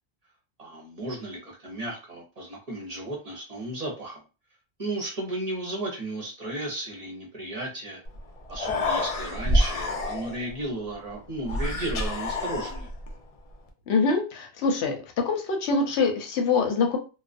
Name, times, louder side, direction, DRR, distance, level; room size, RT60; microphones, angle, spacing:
voice 1, 0.6-4.2 4.8-8.0 8.5-12.9, right 1 dB, 40° right, -2 dB, 0.8 m, -34 dB
Human voice, 8.1-8.2 8.4-10.5 11.4-13.1, left 1 dB, 60° left, 0.4 m, -27 dB
voice 2, 13.9-15.0 15.2-17.0, left 4 dB, 80° left, 3 dB, 0.9 m, -24 dB
2.3 x 2.2 x 2.4 m, 0.32 s
omnidirectional pair, 1.1 m